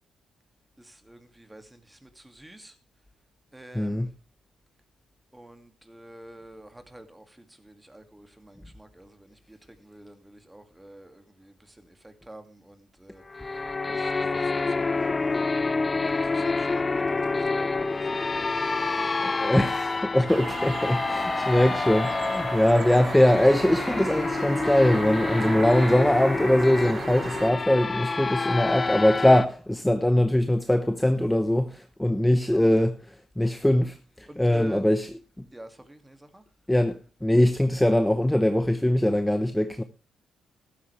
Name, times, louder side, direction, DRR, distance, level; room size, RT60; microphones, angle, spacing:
voice 1, 0.8-2.8 3.5-4.1 5.3-15.5 16.0-19.6 20.2-20.4 32.4-32.7 34.3-34.8 35.5-36.4, right 1 dB, 10° right, 2.3 m, -47 dB
voice 2, 3.7-4.1 19.4-32.9 33.4-35.1 36.7-39.8, left 1 dB, 5° left, 0.9 m, -22 dB
sound 1, 13.3-29.5, left 3 dB, 25° left, 0.6 m, -28 dB
sound 2, 20.3-27.5, right 6 dB, 45° right, 0.8 m, -36 dB
14.5 x 13.0 x 3.3 m
cardioid pair, 90°, 0 cm